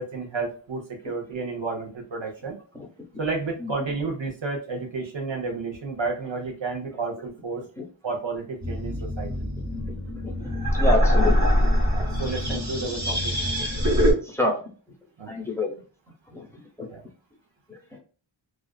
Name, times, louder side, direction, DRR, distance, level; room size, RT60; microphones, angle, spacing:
voice 1, 0.0-2.6 3.2-7.6 8.0-9.5 11.9-13.5 15.2-15.3 16.9-17.0, right 4 dB, 70° right, 2 dB, 0.8 m, -31 dB
sound 1, 8.6-14.1, equal, 35° right, 1.2 m, -23 dB
voice 2, 10.8-11.3 14.3-14.6 15.3-15.7 16.3-16.4 16.8-16.9 17.7-17.8, left 1 dB, 5° left, 1 dB, 0.7 m, -26 dB
2.4 x 2.3 x 2.2 m, 0.38 s
wide cardioid pair, 45°, 47 cm